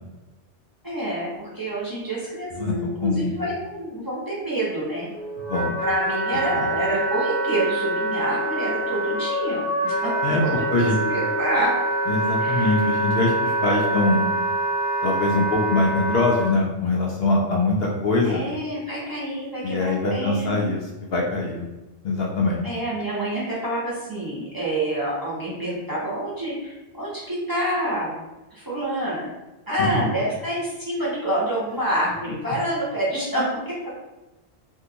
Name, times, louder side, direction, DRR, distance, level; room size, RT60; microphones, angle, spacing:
voice 1, 0.8-5.1 5.8-10.1 10.4-11.7 12.4-12.9 18.2-20.7 22.6-28.2 28.5-29.3 29.7-33.8, right 1 dB, 20° right, -8 dB, 0.8 m, -27 dB
voice 2, 2.6-3.4 5.5-5.8 6.5-6.6 10.2-10.4 10.7-10.9 12.1-14.3 15.0-18.4 19.6-21.7 22.0-22.7 29.8-30.1, left 3 dB, 65° left, -2 dB, 0.7 m, -23 dB
Wind instrument woodwind instrument, 4.9-16.5, right 2 dB, 15° left, 0.9 m, -25 dB
2.7 x 2.3 x 3.8 m, 1.1 s
omnidirectional pair, 1.2 m